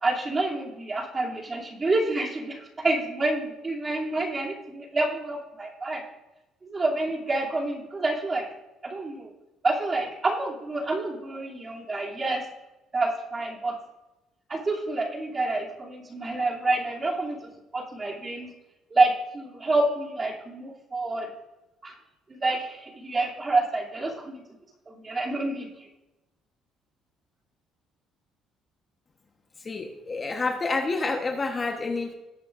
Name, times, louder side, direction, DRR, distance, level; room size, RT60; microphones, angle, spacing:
voice 1, 0.0-6.0 6.6-8.4 8.8-9.3 9.6-12.4 12.9-13.8 14.5-17.4 17.7-18.5 18.9-21.3 21.8-21.9 22.3-24.4 24.9-25.7, right 2 dB, 25° right, -3 dB, 2.7 m, -28 dB
voice 2, 29.6-32.1, left 3 dB, 25° left, 3 dB, 1.1 m, -28 dB
18.0 x 8.2 x 2.5 m, 0.99 s
cardioid pair, 140°, 0 cm